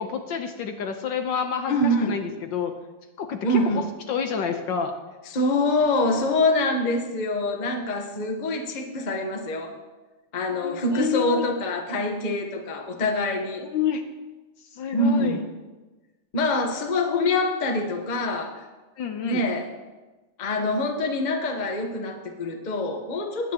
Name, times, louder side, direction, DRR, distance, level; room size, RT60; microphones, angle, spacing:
voice 1, 0.0-2.7 3.2-3.6 4.1-4.9 8.2-8.3 10.5-11.4 13.6-14.0 14.7-15.4 19.0-19.4, left 7 dB, 70° left, 6 dB, 1.4 m, -29 dB
voice 2, 1.7-2.2 3.4-3.8 5.3-9.7 10.3-13.6 14.9-15.4 16.3-18.5 19.2-19.7 20.4-23.5, left 2 dB, 30° left, 3 dB, 0.8 m, -25 dB
19.5 x 8.7 x 2.9 m, 1.2 s
omnidirectional pair, 2.3 m